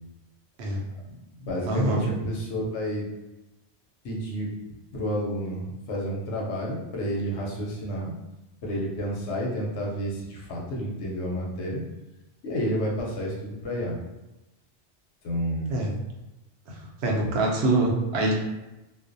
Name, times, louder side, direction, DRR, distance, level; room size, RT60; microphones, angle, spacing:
voice 1, 1.0-3.1 4.0-4.5 4.9-8.1 8.6-11.8 12.4-14.0 15.2-15.8 17.2-17.4, equal, 85° left, -2 dB, 0.9 m, -30 dB
voice 2, 1.7-2.0 15.7-15.9 16.7-18.3, right 2 dB, 75° right, -1 dB, 0.8 m, -25 dB
2.4 x 2.0 x 2.5 m, 1.0 s
omnidirectional pair, 1.1 m